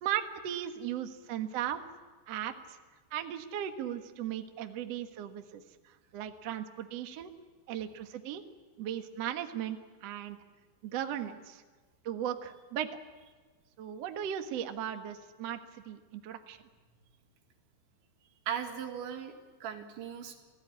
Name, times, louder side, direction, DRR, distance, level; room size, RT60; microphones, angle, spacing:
voice 1, 0.0-1.8 2.3-2.8 3.1-5.6 6.1-7.3 7.7-8.4 8.8-10.4 10.8-11.6 12.0-12.9 13.8-15.6 15.8-16.6, right 10 dB, 65° right, 6 dB, 1.6 m, -37 dB
voice 2, 18.5-20.4, right 8 dB, 85° right, 4 dB, 4.5 m, -38 dB
28.5 x 17.0 x 9.9 m, 1.4 s
omnidirectional pair, 5.2 m